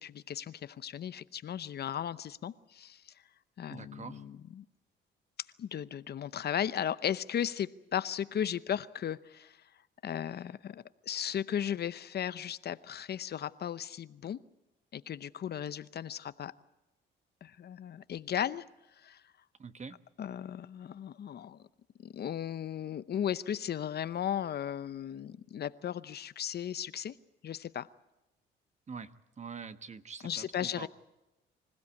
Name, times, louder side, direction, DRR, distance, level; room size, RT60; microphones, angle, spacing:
voice 1, 0.0-3.1 3.6-4.6 5.6-9.6 10.0-14.4 14.9-16.5 17.4-18.7 19.0-19.2 20.2-21.7 22.0-27.2 27.4-27.9 30.2-30.9, left 9 dB, 55° left, 15 dB, 0.8 m, -36 dB
voice 2, 3.7-4.2 19.6-20.0 28.9-30.9, right 5 dB, 35° right, 11 dB, 1.2 m, -45 dB
25.5 x 16.0 x 8.5 m, 0.98 s
cardioid pair, 90°, 20 cm